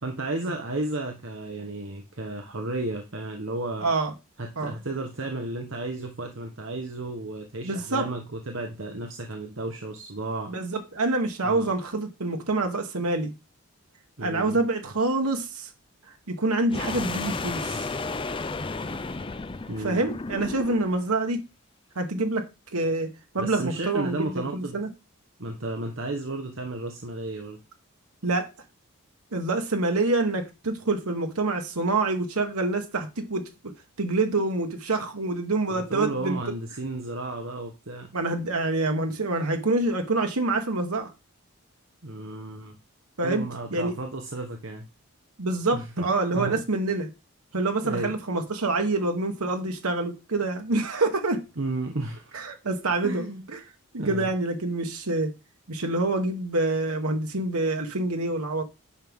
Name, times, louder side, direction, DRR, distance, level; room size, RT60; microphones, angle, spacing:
voice 1, 0.0-3.9 4.4-10.5 11.4-11.7 14.2-14.6 19.7-20.0 23.4-24.8 25.4-27.6 35.7-38.1 42.0-42.8 43.2-44.9 45.7-46.6 47.8-48.1 51.6-52.3 53.0-53.4 54.0-54.3, right 2 dB, 60° right, 1.1 m, -33 dB
voice 2, 3.8-4.1 4.6-4.7 7.6-8.1 10.5-13.3 14.2-15.7 16.3-17.9 19.8-21.4 21.9-22.5 22.7-23.1 23.3-24.9 28.2-28.5 29.3-33.7 34.0-36.4 38.1-41.1 43.2-43.4 43.7-43.9 45.4-47.1 47.5-51.4 52.3-53.6 53.9-55.3 55.7-58.6, right 2 dB, 85° right, 1.4 m, -26 dB
sound 1, 16.7-21.0, left 3 dB, 25° left, 0.4 m, -33 dB
10.0 x 6.1 x 3.6 m
head